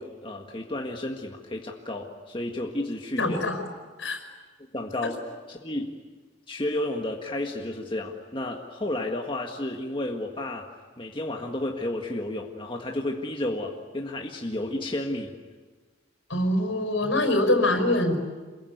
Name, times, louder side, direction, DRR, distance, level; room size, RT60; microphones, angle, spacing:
voice 1, 0.0-3.5 4.7-5.2 5.5-5.9 6.5-10.7 11.0-15.4, left 1 dB, 25° left, 1 dB, 1.8 m, -32 dB
voice 2, 3.2-3.6 4.0-4.2 16.3-18.2, left 1 dB, 75° left, 6 dB, 5.4 m, -24 dB
27.5 x 22.5 x 9.5 m, 1.4 s
head